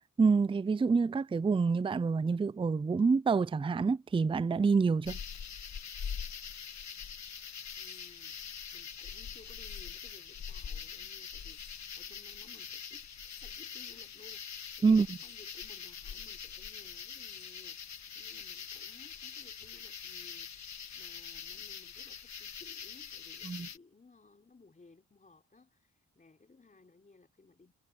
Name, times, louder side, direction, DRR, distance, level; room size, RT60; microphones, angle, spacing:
voice 1, 0.2-5.2 14.8-15.2 23.4-23.7, right 4 dB, 15° right, 0.4 m, -27 dB
sound 1, 5.0-23.8, left 7 dB, 55° left, 1.6 m, -44 dB
voice 2, 7.8-27.7, left 3 dB, 25° left, 3.5 m, -60 dB
cardioid pair, 105°, 33 cm